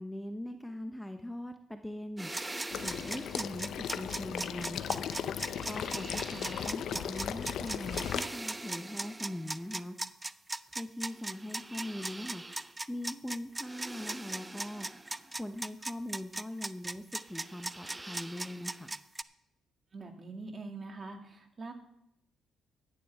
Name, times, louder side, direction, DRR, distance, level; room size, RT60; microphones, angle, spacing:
voice 1, 0.0-5.0 5.6-10.0 10.8-12.4 12.9-14.9 15.3-19.0, left 1 dB, 5° left, 6 dB, 0.8 m, -41 dB
sound 1, 2.2-19.2, right 2 dB, 15° right, 0.4 m, -39 dB
Water / Liquid, 2.7-8.2, left 9 dB, 70° left, 0.7 m, -37 dB
voice 2, 19.9-21.7, right 3 dB, 40° right, 3 dB, 2.3 m, -44 dB
15.5 x 10.5 x 3.6 m, 0.77 s
cardioid pair, 90°, 0 cm